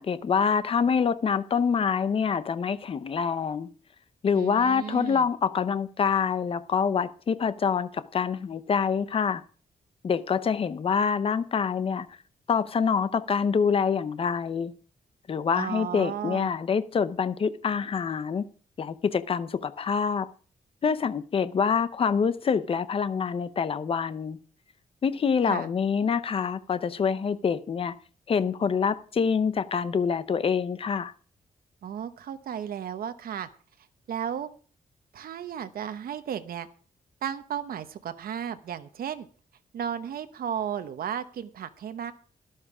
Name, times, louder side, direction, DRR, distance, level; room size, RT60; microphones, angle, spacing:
voice 1, 0.0-3.7 4.2-9.4 10.0-12.1 12.5-14.7 15.3-18.5 18.8-20.3 20.8-24.4 25.0-27.9 28.3-31.1, left 6 dB, 40° left, 14 dB, 0.7 m, -26 dB
voice 2, 4.3-5.3 15.5-16.5 25.5-25.7 31.8-33.5 34.1-34.5 35.1-36.7 37.2-39.3 39.7-42.1, right 9 dB, 90° right, 9 dB, 1.0 m, -34 dB
12.0 x 11.5 x 4.9 m, 0.40 s
wide cardioid pair, 180°, 15 cm